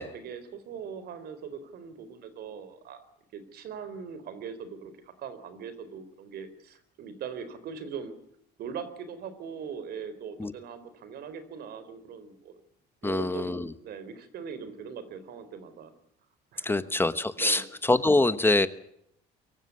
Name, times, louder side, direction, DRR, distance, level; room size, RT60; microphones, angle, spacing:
voice 1, 0.0-3.0 3.3-8.1 8.6-12.6 13.0-15.9 16.5-16.9 17.4-17.6, right 6 dB, 70° right, 13 dB, 4.0 m, -41 dB
voice 2, 13.0-13.7 16.6-18.7, left 2 dB, 15° left, 13 dB, 1.1 m, -24 dB
24.0 x 15.5 x 9.7 m, 0.74 s
cardioid pair, 110°, 17 cm